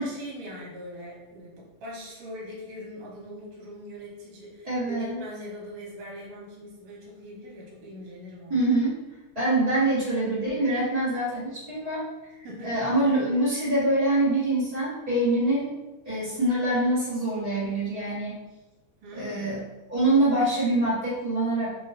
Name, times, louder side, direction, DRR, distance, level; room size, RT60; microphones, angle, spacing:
voice 1, 0.0-8.7 12.4-12.9 19.0-19.6, equal, 70° right, -5 dB, 2.2 m, -41 dB
voice 2, 4.7-5.2 8.5-9.0 9.3-12.0 12.6-15.7 16.0-18.4 19.1-19.6 19.9-21.7, right 1 dB, 30° right, -12 dB, 0.7 m, -25 dB
4.8 x 2.2 x 2.6 m, 1.1 s
omnidirectional pair, 3.3 m